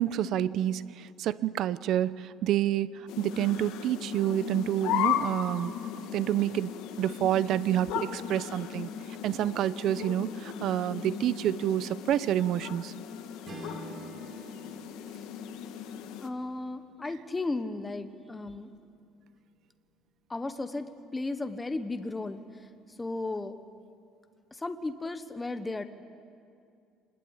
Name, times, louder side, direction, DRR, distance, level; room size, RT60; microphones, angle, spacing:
voice 1, 0.0-2.9 3.2-5.7 6.1-8.9 9.2-12.9, right 12 dB, 55° right, 17 dB, 0.7 m, -28 dB
sound 1, 3.1-16.3, left 9 dB, 75° left, 1.6 m, -36 dB
Strum, 13.4-18.1, right 1 dB, 35° right, 4.1 m, -48 dB
voice 2, 16.2-18.7 20.3-22.4 23.0-23.6 24.6-25.8, left 2 dB, 10° left, 9 dB, 1.1 m, -34 dB
25.0 x 20.0 x 9.7 m, 2.4 s
cardioid pair, 145°, 0 cm